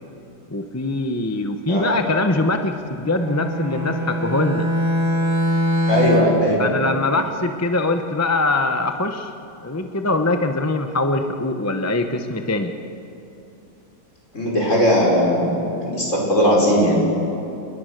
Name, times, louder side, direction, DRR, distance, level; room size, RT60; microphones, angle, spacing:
voice 1, 0.5-4.7 6.6-9.3 9.6-12.7, left 2 dB, 15° left, 6 dB, 0.5 m, -22 dB
Bowed string instrument, 3.1-6.5, equal, 15° right, 2.0 m, -22 dB
voice 2, 5.9-6.6 14.3-17.0, equal, 35° left, -2 dB, 5.9 m, -18 dB
29.0 x 20.5 x 6.7 m, 2.8 s
omnidirectional pair, 2.1 m